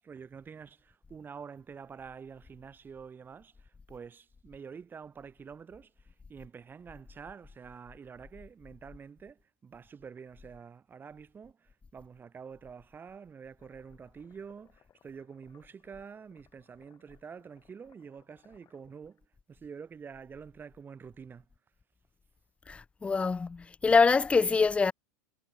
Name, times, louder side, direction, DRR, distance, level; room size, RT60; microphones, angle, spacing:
voice 1, 0.0-21.5, right 6 dB, 20° right, 1.9 m, -47 dB
sound 1, 13.6-19.2, left 10 dB, 35° left, 6.5 m, -67 dB
voice 2, 22.7-24.9, left 4 dB, 15° left, 0.5 m, -25 dB
hypercardioid pair, 105°, 9 cm